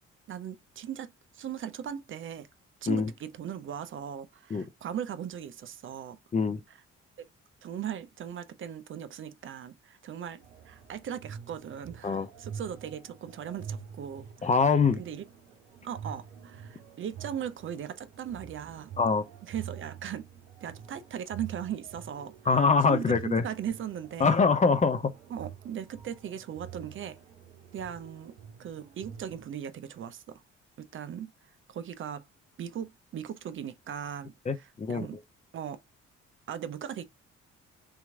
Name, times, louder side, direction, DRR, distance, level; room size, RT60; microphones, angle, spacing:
voice 1, 0.3-1.1 1.3-2.5 2.8-6.2 6.7-6.8 7.2-7.3 7.6-14.5 15.0-15.3 15.8-18.9 19.5-20.3 20.6-24.4 25.3-27.2 27.7-30.4 30.8-31.3 31.7-32.2 32.6-35.2 35.5-35.8 36.5-37.0, right 9 dB, 35° right, 0.5 m, -38 dB
sound 1, 10.4-29.5, right 8 dB, 75° right, 0.8 m, -47 dB
voice 2, 14.4-15.0 19.0-19.2 22.5-23.4 24.2-25.1 34.5-35.1, left 4 dB, 20° left, 0.5 m, -24 dB
3.6 x 3.0 x 3.4 m
figure-of-eight pair, 40°, 36 cm